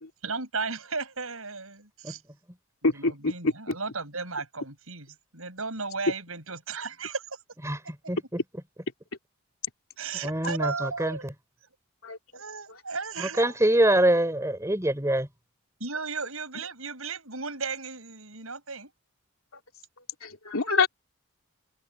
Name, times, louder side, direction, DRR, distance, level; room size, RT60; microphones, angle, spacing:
voice 1, 0.2-2.2 2.8-5.1 5.3-7.4 10.0-11.3 12.3-13.6 15.8-18.9, right 4 dB, 75° right, 7.9 m, -35 dB
voice 2, 2.8-3.7 12.0-12.4 20.2-20.9, left 3 dB, 75° left, 2.9 m, -26 dB
voice 3, 7.6-8.4 10.2-11.3 13.2-15.3, right 1 dB, 15° right, 4.1 m, -25 dB
head